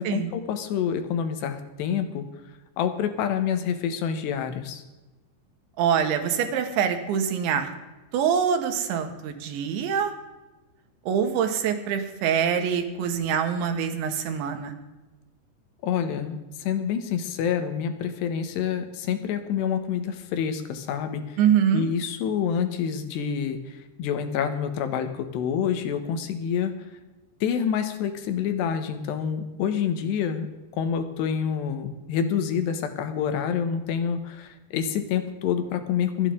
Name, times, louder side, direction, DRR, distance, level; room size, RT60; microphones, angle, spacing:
voice 1, 0.0-2.3 2.8-4.8 15.8-21.4 21.7-26.7 27.4-30.5 30.8-36.3, left 8 dB, 75° left, 8 dB, 3.1 m, -27 dB
voice 2, 5.8-7.7 8.1-10.1 11.1-14.8 21.4-21.9, right 8 dB, 80° right, 6 dB, 3.7 m, -24 dB
27.0 x 9.1 x 3.8 m, 1.1 s
omnidirectional pair, 5.2 m